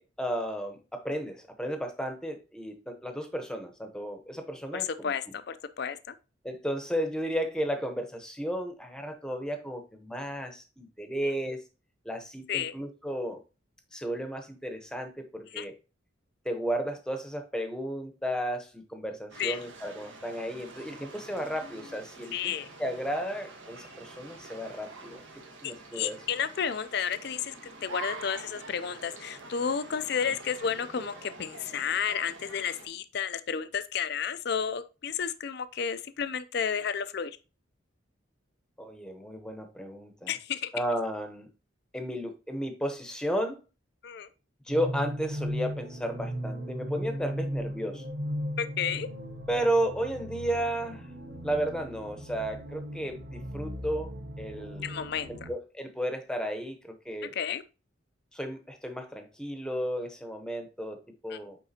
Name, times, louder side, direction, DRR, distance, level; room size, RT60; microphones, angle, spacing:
voice 1, 0.0-5.1 6.4-11.6 12.0-13.4 13.9-15.7 16.4-22.5 22.8-25.2 25.6-26.2 30.2-30.3 38.8-40.3 40.7-41.5 41.9-43.6 44.7-48.0 49.5-51.1 51.4-54.1 54.4-54.9 55.5-57.3 58.3-61.6, equal, 5° left, 0.8 m, -33 dB
voice 2, 4.7-6.2 11.2-11.3 12.5-12.7 15.5-15.7 19.4-19.6 22.3-22.7 25.6-37.4 40.3-40.7 44.0-44.3 48.6-49.1 54.8-55.5 57.3-57.6 61.3-61.4, left 7 dB, 55° left, 0.4 m, -32 dB
sound 1, 19.3-32.9, right 3 dB, 75° right, 1.4 m, -46 dB
sound 2, 44.7-55.5, equal, 50° right, 0.9 m, -37 dB
9.0 x 3.8 x 2.8 m
head